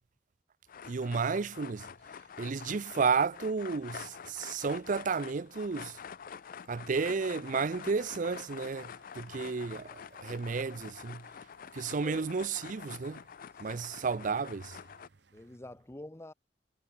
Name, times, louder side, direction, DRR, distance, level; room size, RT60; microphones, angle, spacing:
sound 1, 0.7-15.1, left 7 dB, 50° left, 0.4 m, -47 dB
voice 1, 0.9-1.9 2.4-6.0 6.7-11.2 11.7-13.2 13.6-14.8, right 5 dB, 45° right, 0.5 m, -32 dB
sound 2, 7.3-15.6, right 4 dB, 75° right, 7.0 m, -65 dB
voice 2, 13.7-14.2 15.3-16.3, left 1 dB, 15° left, 0.8 m, -48 dB
head